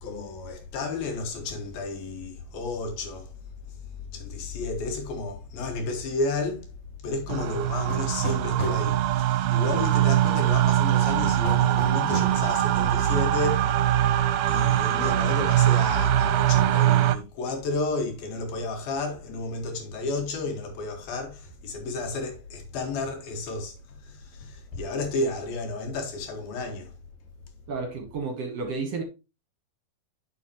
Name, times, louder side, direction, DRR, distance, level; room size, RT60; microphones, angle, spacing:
voice 1, 0.0-3.3 3.9-6.7 7.0-13.8 14.5-26.9, left 3 dB, 85° left, 3.5 m, -32 dB
sound 1, 7.3-17.2, right 12 dB, 80° right, 2.1 m, -22 dB
sound 2, 7.9-8.8 11.4-12.4, left 1 dB, 55° left, 2.7 m, -35 dB
voice 2, 27.7-29.0, right 4 dB, 60° right, 1.9 m, -31 dB
10.5 x 5.7 x 3.0 m
omnidirectional pair, 4.1 m